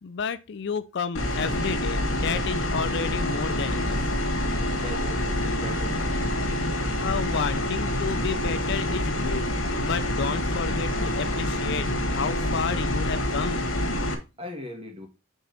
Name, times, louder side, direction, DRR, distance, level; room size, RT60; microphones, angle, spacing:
voice 1, 0.0-4.0 7.0-9.5 9.8-13.7, left 5 dB, 60° left, 0.4 m, -31 dB
sound 1, 1.1-14.1, left 1 dB, 85° left, 1.5 m, -27 dB
voice 2, 4.8-6.0 14.4-15.1, equal, 30° right, 1.9 m, -39 dB
5.4 x 3.8 x 5.9 m
head